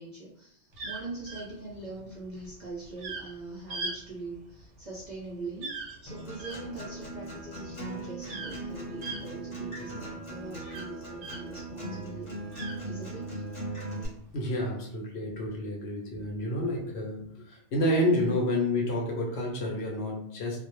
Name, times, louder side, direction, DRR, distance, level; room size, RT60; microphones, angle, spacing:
voice 1, 0.0-12.5 12.9-13.3, right 2 dB, 55° right, -5 dB, 0.5 m, -42 dB
sound 1, 0.7-11.7 12.0-13.4 14.1-14.5, right 3 dB, 80° right, 1.0 m, -41 dB
Acoustic guitar, 6.1-14.1, right 2 dB, 25° left, 0.9 m, -39 dB
voice 2, 14.3-20.6, left 1 dB, 65° left, 0 dB, 0.8 m, -29 dB
2.3 x 2.0 x 2.9 m, 0.72 s
omnidirectional pair, 1.2 m